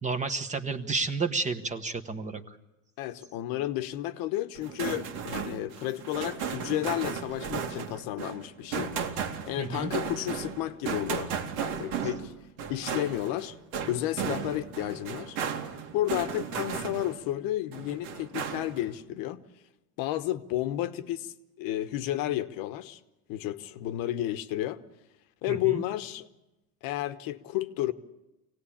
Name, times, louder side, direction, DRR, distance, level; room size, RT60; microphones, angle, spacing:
voice 1, 0.0-2.4 9.6-9.9 25.5-25.8, right 4 dB, 15° right, 1.2 m, -31 dB
voice 2, 3.0-8.9 9.5-12.3 12.7-13.6 13.9-15.4 15.9-19.4 20.0-23.0 23.3-24.8 25.4-26.3 26.8-27.9, left 14 dB, 55° left, 1.1 m, -32 dB
sound 1, 4.5-17.3 17.7-18.9, right 7 dB, 80° right, 2.6 m, -35 dB
25.0 x 18.0 x 8.7 m
supercardioid pair, 140°, 41 cm